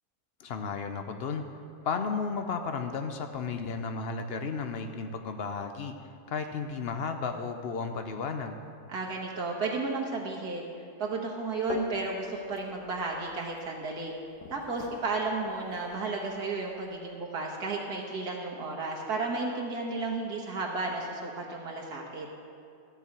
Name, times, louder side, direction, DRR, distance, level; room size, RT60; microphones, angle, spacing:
voice 1, 0.4-1.4 1.8-6.0 6.3-8.6, left 5 dB, 65° left, 6 dB, 0.6 m, -33 dB
voice 2, 8.9-10.7 11.0-14.1 14.5-22.3, right 3 dB, 75° right, -1 dB, 1.6 m, -33 dB
sound 1, 11.5-16.9, left 3 dB, 80° left, 1.5 m, -45 dB
13.0 x 4.6 x 8.4 m, 2.4 s
omnidirectional pair, 1.7 m